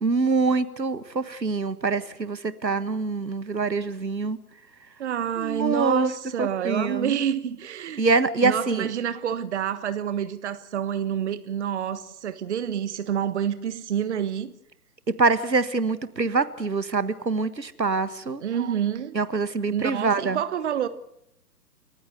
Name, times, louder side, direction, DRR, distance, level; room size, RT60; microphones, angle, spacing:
voice 1, 0.0-4.4 5.4-6.1 6.4-7.2 8.0-8.9 15.1-18.4 19.1-20.4, right 4 dB, 80° right, 1.7 m, -25 dB
voice 2, 5.0-8.0 8.4-14.5 18.4-19.1 19.7-20.9, right 9 dB, 45° right, 1.4 m, -28 dB
29.5 x 15.0 x 8.1 m
figure-of-eight pair, 125°, 50 cm